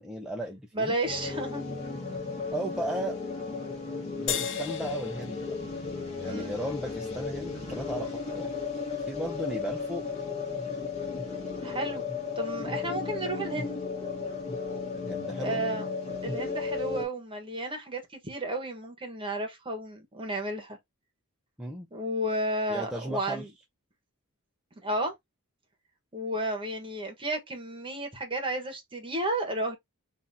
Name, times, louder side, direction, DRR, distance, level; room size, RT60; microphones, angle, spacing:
voice 1, 0.0-1.0 2.5-3.2 4.2-5.6 6.2-8.6 8.9-10.0 14.9-15.6 21.6-21.9 22.7-23.5, right 1 dB, 5° right, 0.6 m, -35 dB
voice 2, 0.7-1.8 6.2-6.5 11.6-12.0 12.4-13.8 15.4-15.9 16.2-20.8 21.9-23.5 24.8-25.1 26.1-29.8, right 1 dB, 25° right, 1.2 m, -32 dB
sound 1, 1.0-17.0, left 4 dB, 30° left, 1.9 m, -34 dB
sound 2, 4.3-6.9, left 9 dB, 55° left, 0.6 m, -37 dB
3.6 x 2.7 x 4.0 m
head